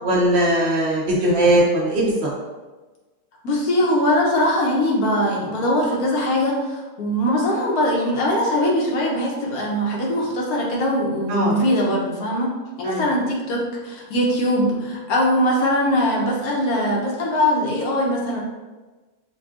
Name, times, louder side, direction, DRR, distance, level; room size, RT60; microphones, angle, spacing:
voice 1, 0.0-2.3 11.3-11.5 12.8-13.1, right 1 dB, 55° right, -4 dB, 0.9 m, -19 dB
voice 2, 3.4-12.5 12.8-18.4, equal, 90° left, -3 dB, 1.3 m, -21 dB
5.2 x 2.3 x 2.5 m, 1.2 s
omnidirectional pair, 1.5 m